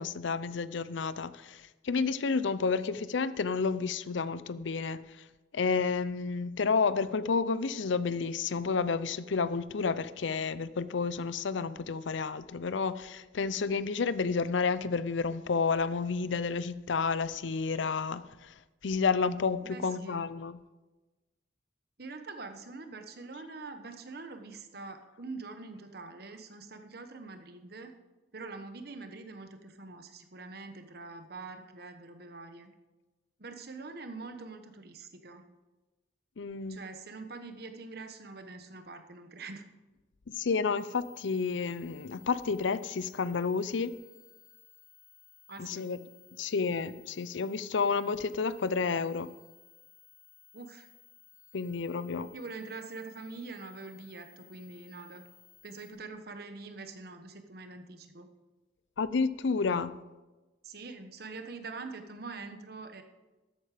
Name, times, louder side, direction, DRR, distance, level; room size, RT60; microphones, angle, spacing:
voice 1, 0.0-5.0 5.5-18.2 18.8-20.6 36.4-36.8 40.3-43.9 45.6-46.1 46.4-49.3 51.5-52.3 59.0-60.0, left 5 dB, 80° left, 0.5 m, -30 dB
voice 2, 19.6-20.3 22.0-27.9 28.3-32.7 33.4-35.4 36.7-39.6 45.5-45.9 50.5-50.9 52.3-55.2 55.6-58.3 60.6-63.0, right 3 dB, 55° right, 1.2 m, -44 dB
sound 1, 40.8-55.9, left 11 dB, 20° left, 4.2 m, -59 dB
13.5 x 8.7 x 5.0 m
head